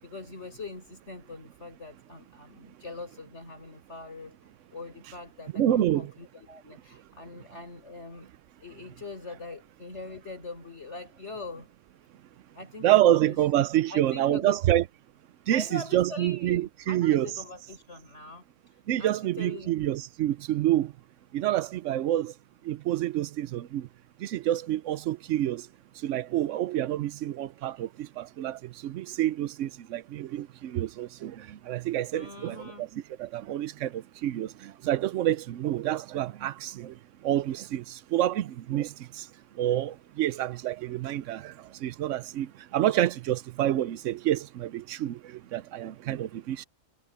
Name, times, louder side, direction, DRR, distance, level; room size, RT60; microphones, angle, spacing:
voice 1, 0.0-8.3 8.6-11.7 12.5-13.4 13.9-14.7 15.5-19.7 32.1-32.8, left 3 dB, 60° left, 6.4 m, -42 dB
voice 2, 5.5-6.1 12.8-14.8 15.5-17.3 18.9-20.9 21.3-22.3 22.7-23.8 24.2-25.6 26.0-27.9 28.2-31.3 31.7-32.9 33.2-33.9 34.2-34.5 34.8-36.9 37.2-37.8 38.1-38.9 39.6-41.4 41.8-42.5 42.7-45.2 45.5-46.6, right 13 dB, 75° right, 0.9 m, -27 dB
omnidirectional pair, 1.3 m